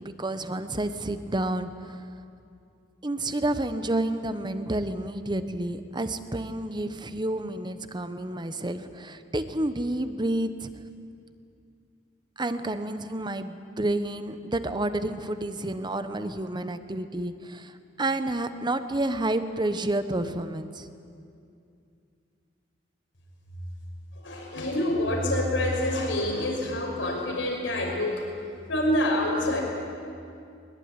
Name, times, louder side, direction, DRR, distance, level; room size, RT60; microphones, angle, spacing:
voice 1, 0.0-2.0 3.0-10.7 12.4-20.9, right 1 dB, 25° right, 10 dB, 1.1 m, -30 dB
voice 2, 24.2-28.2 28.7-29.6, left 1 dB, 85° left, 0 dB, 5.7 m, -26 dB
21.5 x 21.5 x 9.8 m, 2.5 s
head